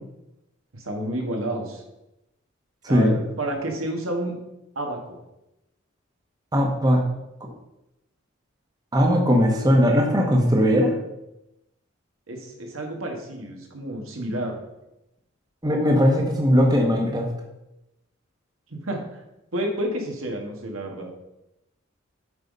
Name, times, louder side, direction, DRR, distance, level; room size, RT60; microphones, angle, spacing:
voice 1, 0.7-1.8 2.9-4.4 4.7-5.2 12.3-14.6 18.7-19.2 19.5-21.1, right 1 dB, 80° right, 2 dB, 1.5 m, -30 dB
voice 2, 6.5-7.0 8.9-10.9 15.6-17.3, equal, 20° right, 0 dB, 1.0 m, -19 dB
8.0 x 4.0 x 5.3 m, 0.90 s
head